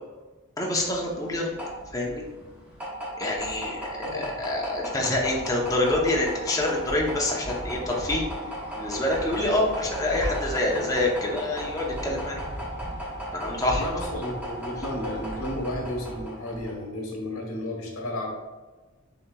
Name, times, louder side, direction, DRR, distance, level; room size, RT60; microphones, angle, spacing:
voice 1, 0.6-1.6 1.9-2.2 3.2-8.2 8.7-12.4 13.3-13.8, left 1 dB, 15° left, -2 dB, 0.6 m, -26 dB
sound 1, 0.8-16.8, equal, 10° right, 0.9 m, -35 dB
voice 2, 4.0-4.5 13.7-18.3, left 1 dB, 85° left, 0 dB, 1.0 m, -33 dB
6.4 x 2.9 x 2.2 m, 1.2 s
head